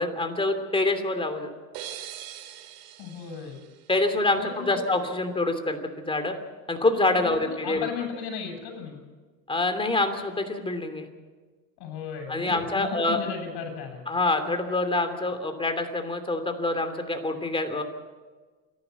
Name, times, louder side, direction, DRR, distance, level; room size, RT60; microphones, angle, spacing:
voice 1, 0.0-1.5 3.9-6.3 6.7-7.9 9.5-11.1 12.3-13.2 14.1-17.8, left 2 dB, 10° left, 6 dB, 2.9 m, -26 dB
sound 1, 1.7-4.5, right 11 dB, 75° right, 2.9 m, -43 dB
voice 2, 3.0-3.6 4.3-4.8 7.2-9.0 11.8-14.0, left 6 dB, 60° left, 3 dB, 7.4 m, -36 dB
27.5 x 11.5 x 8.4 m, 1.4 s
supercardioid pair, 100°, 43 cm